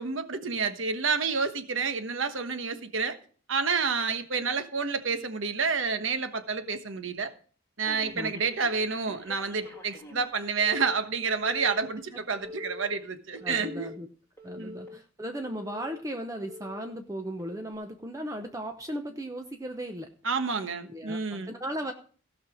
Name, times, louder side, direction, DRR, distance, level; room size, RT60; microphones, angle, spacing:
voice 1, 0.0-3.2 3.5-7.3 7.8-13.9 14.6-14.8 20.2-21.5, right 5 dB, 70° right, 1.2 m, -29 dB
Telephone, 7.8-10.3 10.6-10.9 11.3-11.9 12.4-12.9 13.4-13.9 14.4-14.9 15.4-15.9 16.4-16.9 17.4-17.7, left 2 dB, 15° left, 2.2 m, -44 dB
voice 2, 13.4-14.1 14.4-20.1 20.9-21.9, right 1 dB, 15° right, 0.8 m, -36 dB
16.5 x 5.8 x 5.0 m
head